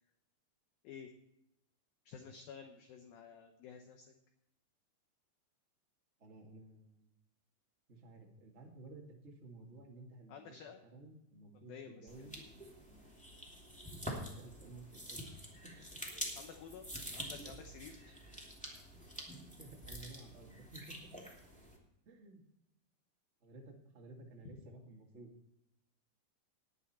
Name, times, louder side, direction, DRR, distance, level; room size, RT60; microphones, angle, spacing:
voice 1, 2.1-4.1 10.3-10.8 11.5-12.1 16.4-16.9 17.1-18.1 24.5-24.6, left 7 dB, 75° left, 5 dB, 2.3 m, -52 dB
voice 2, 6.2-7.1 7.9-10.4 10.8-12.4 14.0-15.2 15.6-16.0 17.5-17.6 18.9-19.0 19.6-21.2 22.0-22.4 23.4-25.3, right 2 dB, 65° right, 0 dB, 0.6 m, -54 dB
sound 1, 12.1-21.8, equal, 5° left, 1.2 m, -47 dB
19.0 x 8.4 x 4.3 m, 0.84 s
omnidirectional pair, 5.2 m